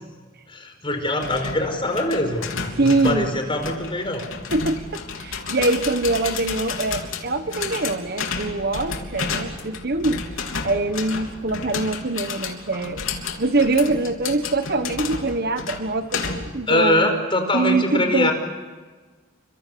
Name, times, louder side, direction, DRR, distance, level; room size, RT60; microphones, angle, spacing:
voice 1, 0.5-4.3 16.7-18.3, left 1 dB, 25° left, 5 dB, 4.9 m, -23 dB
sound 1, 1.2-16.6, left 5 dB, 80° left, 3.4 m, -32 dB
voice 2, 2.8-3.4 4.5-10.2 10.6-13.0 13.4-17.1 17.5-18.3, right 2 dB, 50° right, 9 dB, 1.3 m, -23 dB
29.5 x 25.5 x 7.0 m, 1.4 s
head